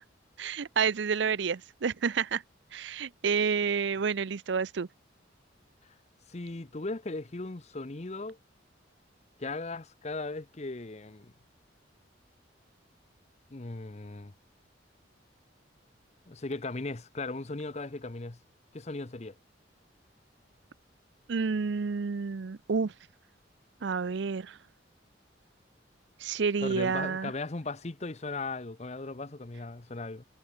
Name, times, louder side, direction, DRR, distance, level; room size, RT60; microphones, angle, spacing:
voice 1, 0.4-2.4 2.7-4.9 21.3-22.9 23.8-24.6 26.2-27.3, right 5 dB, 70° right, 0.5 m, -29 dB
voice 2, 6.3-8.4 9.4-11.3 13.5-14.3 16.3-18.4 18.7-19.3 26.6-30.2, left 3 dB, 35° left, 0.8 m, -37 dB
head